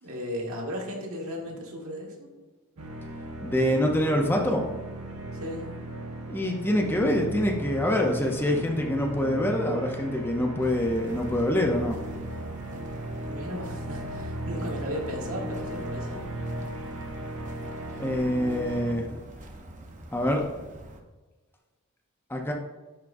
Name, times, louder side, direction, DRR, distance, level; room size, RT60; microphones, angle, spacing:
voice 1, 0.0-2.3 5.3-5.8 13.3-16.3, equal, 75° right, -1 dB, 1.4 m, -36 dB
sound 1, 2.8-19.0, right 1 dB, 90° right, 1.1 m, -37 dB
voice 2, 3.4-4.7 6.3-12.0 18.0-19.2 20.1-20.4 22.3-22.5, left 1 dB, 10° left, 1 dB, 0.5 m, -25 dB
sound 2, 10.6-21.0, right 1 dB, 35° right, 0.6 m, -44 dB
10.5 x 3.6 x 2.6 m, 1.2 s
head